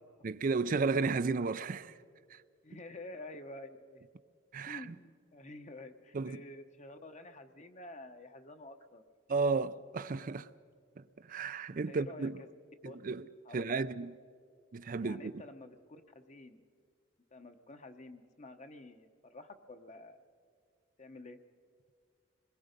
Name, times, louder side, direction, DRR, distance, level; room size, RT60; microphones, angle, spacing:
voice 1, 0.2-1.9 2.3-2.4 4.5-4.8 6.1-6.4 9.3-10.5 11.3-12.4 12.8-13.3 13.5-14.1 14.7-15.3, right 4 dB, 45° right, 0.4 m, -33 dB
voice 2, 2.6-4.0 4.6-9.0 11.7-12.6 12.8-13.0 13.4-13.8 15.0-16.6 17.3-20.2 21.0-21.4, left 2 dB, 35° left, 1.0 m, -50 dB
27.0 x 21.0 x 5.2 m
head